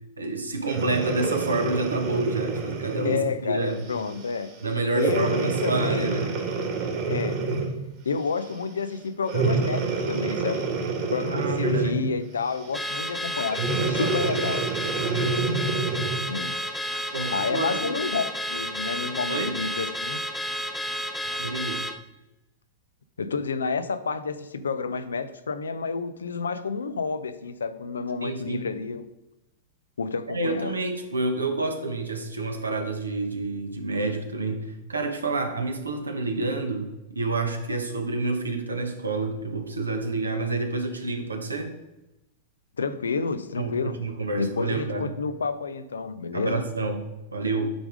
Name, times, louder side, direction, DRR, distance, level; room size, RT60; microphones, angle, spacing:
voice 1, 0.2-3.2 3.5-3.9 4.6-6.3 11.3-12.1 13.8-14.3 15.0-15.4 17.1-17.9 19.3-19.5 21.4-21.8 28.2-28.6 30.3-41.8 43.6-45.1 46.3-47.7, right 3 dB, 90° right, 5 dB, 1.1 m, -29 dB
Breathing, 0.6-3.3 3.9-4.1 4.9-7.8 9.3-12.1 13.5-16.2 16.9-17.0, right 4 dB, 45° right, 1.8 m, -27 dB
voice 2, 3.0-4.5 4.9-6.2 7.1-7.5 8.0-10.6 11.1-14.7 16.3-20.2 21.2-21.4 23.2-29.1 30.0-30.7 42.8-44.0 44.4-46.6, left 5 dB, 80° left, 12 dB, 0.5 m, -30 dB
Car / Alarm, 12.7-22.0, equal, ahead, 0.6 m, -31 dB
8.8 x 3.5 x 5.1 m, 0.96 s
hypercardioid pair, 100°, 0 cm